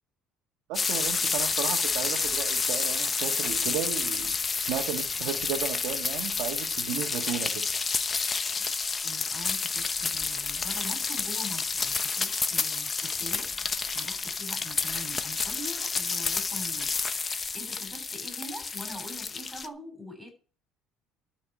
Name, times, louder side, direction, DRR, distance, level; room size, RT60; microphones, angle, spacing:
sound 1, 0.7-19.7, left 4 dB, 25° left, 1.0 m, -29 dB
voice 1, 0.7-7.6, right 10 dB, 80° right, 1.5 m, -34 dB
voice 2, 9.0-20.3, equal, 5° right, 8.0 m, -44 dB
12.5 x 5.8 x 8.5 m
cardioid pair, 125°, 0 cm